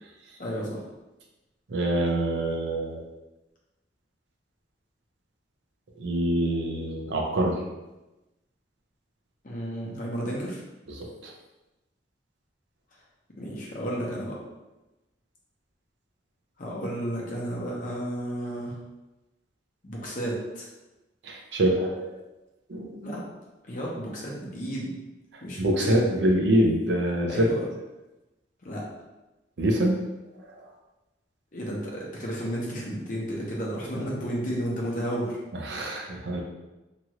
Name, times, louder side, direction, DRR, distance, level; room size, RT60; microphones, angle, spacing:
voice 1, 0.4-0.8 9.4-10.6 13.4-14.4 16.6-18.8 19.8-20.6 23.0-23.2 23.6-25.0 25.4-26.0 27.3-27.6 28.6-28.8 31.5-35.4, equal, 50° left, -4 dB, 0.8 m, -32 dB
voice 2, 1.7-3.0 6.0-7.6 10.9-11.3 21.2-22.2 22.7-23.0 25.3-27.5 29.6-30.1 30.5-30.6 35.5-36.4, right 1 dB, 80° right, 0 dB, 0.6 m, -25 dB
3.0 x 2.4 x 2.9 m, 1.0 s
head